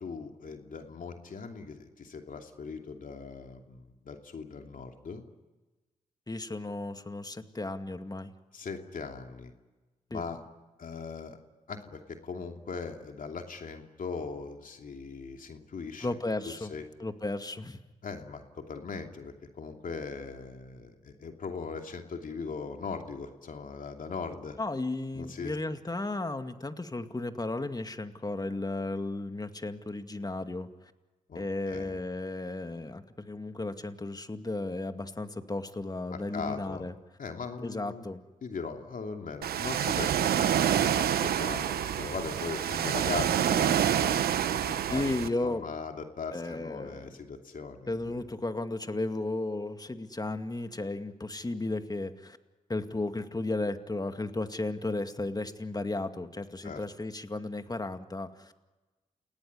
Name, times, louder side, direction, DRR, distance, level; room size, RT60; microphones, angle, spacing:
voice 1, 0.0-5.2 8.5-9.5 10.1-10.4 10.8-11.4 11.7-16.1 16.5-16.8 18.0-24.6 25.1-25.6 31.3-32.0 36.1-36.9 37.2-38.1 38.4-44.1 44.7-48.1 56.6-56.8, left 5 dB, 60° left, 4 dB, 2.8 m, -39 dB
voice 2, 6.3-8.3 10.1-10.2 16.0-16.7 17.0-17.8 24.6-30.9 31.3-36.9 37.6-38.2 44.9-45.7 46.3-47.2 47.9-52.4 52.7-58.7, left 2 dB, 25° left, 8 dB, 2.2 m, -34 dB
Ocean, 39.4-45.3, right 9 dB, 75° right, 1.2 m, -27 dB
29.0 x 18.0 x 9.8 m, 1.2 s
supercardioid pair, 40°, 16 cm